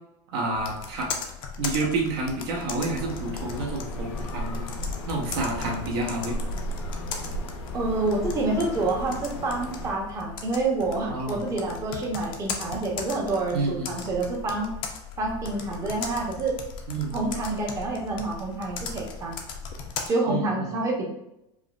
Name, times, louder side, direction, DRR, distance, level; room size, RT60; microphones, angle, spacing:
voice 1, 0.3-1.1 1.6-4.7 5.1-6.3 11.1-11.5 13.5-14.0 16.9-17.3 20.3-20.7, right 2 dB, 65° right, -1 dB, 1.0 m, -29 dB
Computer keyboard, 0.5-20.1, left 5 dB, 35° left, 0.4 m, -38 dB
sound 1, 2.9-9.9, equal, 80° left, 0.7 m, -35 dB
voice 2, 7.7-14.7 15.2-16.5 17.1-19.4 20.1-21.0, right 2 dB, 20° right, -1 dB, 0.7 m, -28 dB
4.8 x 2.0 x 2.4 m, 0.84 s
supercardioid pair, 155°, 15 cm